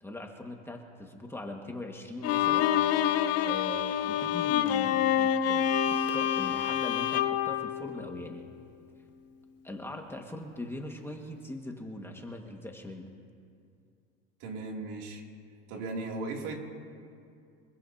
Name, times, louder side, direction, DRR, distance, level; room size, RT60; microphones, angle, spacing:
voice 1, 0.0-2.7 3.5-8.5 9.6-13.1, left 2 dB, 5° left, 1 dB, 1.8 m, -41 dB
Bowed string instrument, 2.2-8.5, left 10 dB, 45° left, 1.1 m, -27 dB
voice 2, 14.4-15.2 15.7-16.6, right 3 dB, 65° right, 0 dB, 3.0 m, -36 dB
25.5 x 15.5 x 2.9 m, 2.4 s
supercardioid pair, 95°, 33 cm